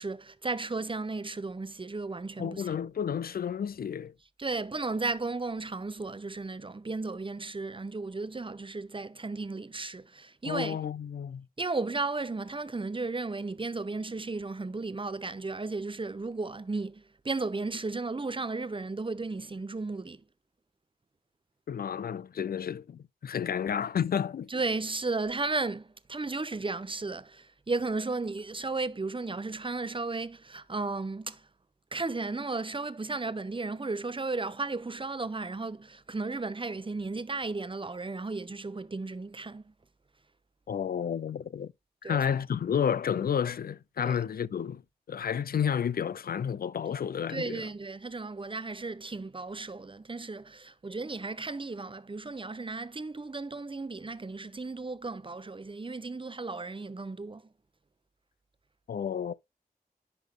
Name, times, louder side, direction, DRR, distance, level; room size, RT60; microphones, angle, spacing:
voice 1, 0.0-2.8 4.4-10.8 11.6-20.2 24.5-31.5 31.9-39.7 42.0-42.2 44.1-44.2 47.3-57.4, right 3 dB, 35° right, 0.8 m, -34 dB
voice 2, 2.4-4.1 10.4-11.5 21.7-24.5 40.7-41.7 42.0-44.8 45.1-47.7 58.9-59.3, left 8 dB, 70° left, 0.4 m, -31 dB
10.5 x 3.6 x 3.6 m
cardioid pair, 50°, 16 cm